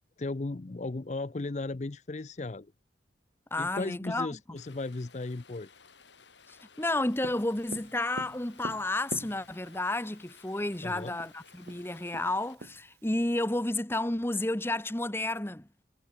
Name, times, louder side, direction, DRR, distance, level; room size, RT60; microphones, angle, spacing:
voice 1, 0.2-2.7 3.6-5.7 10.8-11.2, left 2 dB, 40° left, 0.6 m, -36 dB
voice 2, 3.5-4.6 6.5-15.7, left 2 dB, 15° left, 0.9 m, -31 dB
Rain, 4.6-12.6, left 5 dB, 85° left, 6.2 m, -57 dB
Tap, 7.2-9.8 10.8-10.9 11.2-11.3 11.7-13.1, right 3 dB, 65° right, 0.8 m, -43 dB
head